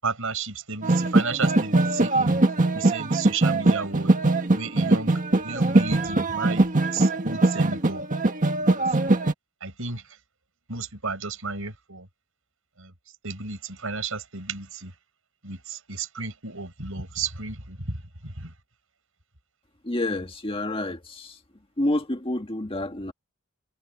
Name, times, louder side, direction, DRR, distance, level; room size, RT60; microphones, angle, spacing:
voice 1, 0.0-2.4 2.7-4.1 4.5-8.0 8.6-9.2 9.6-10.0 10.7-12.1 12.8-12.9 13.2-14.9 15.4-18.0 18.2-18.5, right 4 dB, 70° right, 7.8 m, -33 dB
sound 1, 0.8-9.3, right 2 dB, 40° right, 1.7 m, -21 dB
voice 2, 19.8-21.4 21.8-23.1, left 1 dB, 25° left, 1.7 m, -28 dB
head